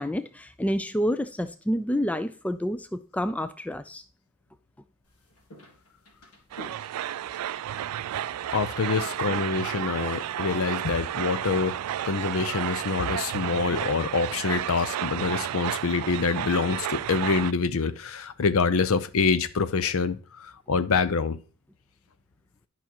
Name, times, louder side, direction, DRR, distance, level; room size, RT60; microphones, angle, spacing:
voice 1, 0.0-4.0, equal, 5° left, 0.3 m, -28 dB
sound 1, 5.0-14.7, equal, 85° left, 1.6 m, -51 dB
sound 2, 6.5-17.5, right 11 dB, 90° right, 0.3 m, -32 dB
voice 2, 8.5-21.4, left 4 dB, 65° left, 0.5 m, -26 dB
11.0 x 5.7 x 2.9 m
head